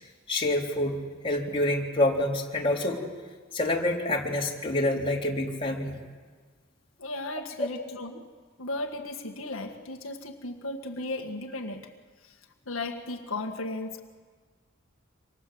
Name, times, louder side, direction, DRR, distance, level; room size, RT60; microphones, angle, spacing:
voice 1, 0.3-1.0 1.2-3.0 3.5-6.0, left 1 dB, 25° left, -3 dB, 4.3 m, -27 dB
voice 2, 7.0-8.3 8.6-11.9 12.2-14.0, left 2 dB, 80° left, 2 dB, 2.0 m, -36 dB
28.0 x 26.5 x 8.0 m, 1.5 s
head